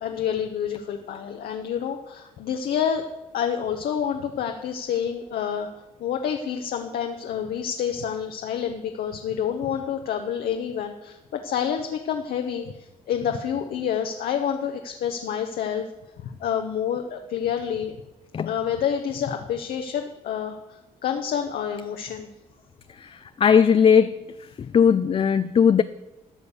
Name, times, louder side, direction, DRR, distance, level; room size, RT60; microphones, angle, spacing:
voice 1, 0.0-3.0 3.3-5.7 6.0-15.9 16.2-17.9 18.4-22.3, left 8 dB, 75° left, 0.9 m, -28 dB
voice 2, 23.0-24.2 24.7-25.8, left 7 dB, 35° left, 0.4 m, -18 dB
13.0 x 6.5 x 7.1 m
cardioid pair, 75°, 15 cm